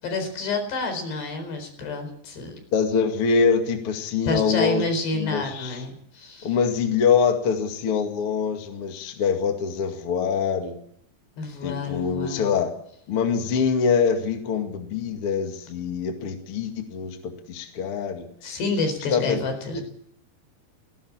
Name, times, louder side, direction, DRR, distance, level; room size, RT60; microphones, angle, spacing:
voice 1, 0.0-2.5 4.3-6.5 11.4-12.5 18.4-19.8, left 3 dB, 85° left, 5 dB, 6.7 m, -29 dB
voice 2, 2.7-4.8 5.1-5.8 6.4-10.8 11.6-12.7 13.1-18.3 19.1-19.4 19.7-19.8, left 6 dB, 40° left, 4 dB, 2.4 m, -24 dB
18.5 x 17.5 x 8.7 m, 0.70 s
omnidirectional pair, 4.7 m